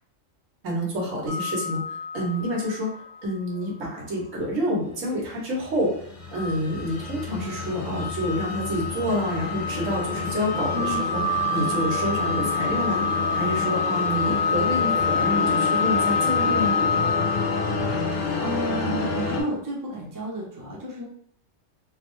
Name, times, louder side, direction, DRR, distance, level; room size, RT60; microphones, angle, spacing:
voice 1, 0.6-1.8 2.1-2.9 3.2-11.2 11.5-16.7, equal, 90° right, -3 dB, 1.3 m, -28 dB
sound 1, 1.3-3.2 3.6-3.7 6.3-18.2, left 4 dB, 75° right, 1.0 m, -27 dB
sound 2, 5.3-19.4, left 3 dB, 55° left, 0.6 m, -30 dB
voice 2, 10.7-11.1 17.9-21.0, equal, 25° right, -3 dB, 0.5 m, -32 dB
2.8 x 2.1 x 3.0 m, 0.62 s
omnidirectional pair, 1.3 m